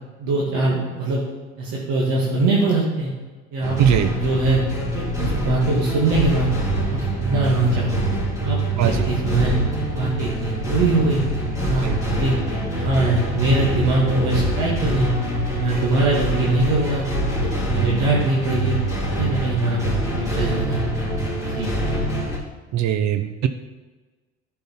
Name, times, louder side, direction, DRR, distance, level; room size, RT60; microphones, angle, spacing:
voice 1, 0.2-1.2 1.6-3.1 3.5-3.7 4.1-4.6 4.9-6.5 6.9-8.0 8.4-9.5 9.9-11.2 11.6-12.3 12.7-15.1 15.5-17.0 17.4-18.8 19.2-20.8 21.4-21.7, right 2 dB, 65° right, -4 dB, 2.0 m, -22 dB
sound 1, 3.6-22.4, right 1 dB, 10° right, 3.1 m, -25 dB
voice 2, 3.8-4.1 8.8-9.1 11.8-12.0 22.7-23.5, right 9 dB, 45° right, 8 dB, 0.7 m, -20 dB
10.0 x 5.7 x 4.2 m, 1.3 s
hypercardioid pair, 65°, 38 cm